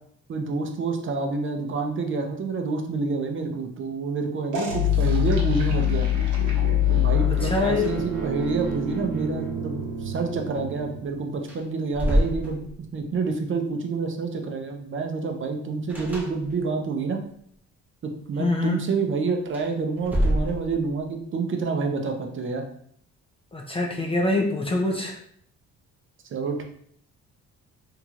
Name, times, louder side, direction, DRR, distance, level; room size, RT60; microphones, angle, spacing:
voice 1, 0.3-6.1 6.9-12.7 12.9-17.2 18.0-22.6 26.3-26.6, right 4 dB, 40° right, 3 dB, 0.5 m, -28 dB
sound 1, 4.5-11.1, left 7 dB, 80° right, 0.8 m, -25 dB
voice 2, 7.4-7.9 18.4-18.8 23.5-25.2, left 2 dB, 20° left, 1 dB, 0.4 m, -24 dB
sound 2, 7.4-8.3 8.5-8.6 10.9-11.0 11.4-13.1 15.9-16.9 19.4-21.1, equal, 5° right, 0.8 m, -28 dB
3.0 x 2.8 x 2.4 m, 0.64 s
cardioid pair, 90°, 30 cm